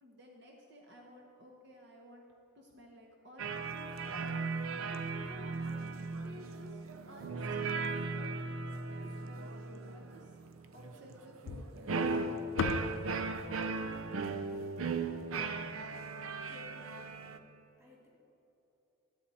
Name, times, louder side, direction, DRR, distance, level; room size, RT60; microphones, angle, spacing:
voice 1, 0.0-2.3 2.5-3.9 4.9-6.8 7.1-8.6 8.9-10.4 10.7-12.2, equal, 55° right, 0 dB, 1.0 m, -55 dB
sound 1, 3.4-17.4, right 4 dB, 90° right, 0.6 m, -37 dB
sound 2, 11.5-15.8, left 5 dB, 65° left, 0.4 m, -40 dB
voice 2, 16.5-17.5 17.8-18.1, left 4 dB, 15° right, -3 dB, 1.9 m, -56 dB
13.0 x 8.3 x 4.2 m, 3.0 s
head